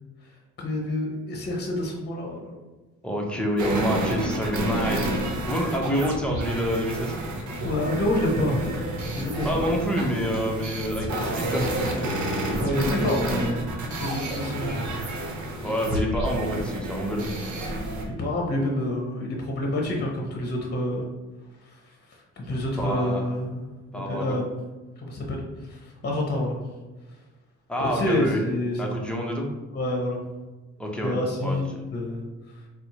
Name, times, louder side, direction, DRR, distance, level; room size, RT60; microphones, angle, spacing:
voice 1, 0.6-2.5 7.6-9.6 12.6-15.0 15.5-15.7 18.1-21.1 21.6-21.8 22.1-23.6 23.9-24.4 25.0-26.6 27.9-28.9 29.7-30.2 31.0-32.3, left 1 dB, 35° left, -1 dB, 0.8 m, -28 dB
voice 2, 3.0-5.1 5.5-7.1 9.4-12.2 15.6-17.3 22.8-23.3 23.9-24.4 27.7-28.4 28.8-29.5 30.8-31.2 31.4-31.8, equal, 5° left, -1 dB, 0.7 m, -27 dB
sound 1, 3.6-18.0, right 1 dB, 70° right, 0.8 m, -30 dB
4.1 x 2.1 x 2.9 m, 1.2 s
cardioid pair, 90°, 30 cm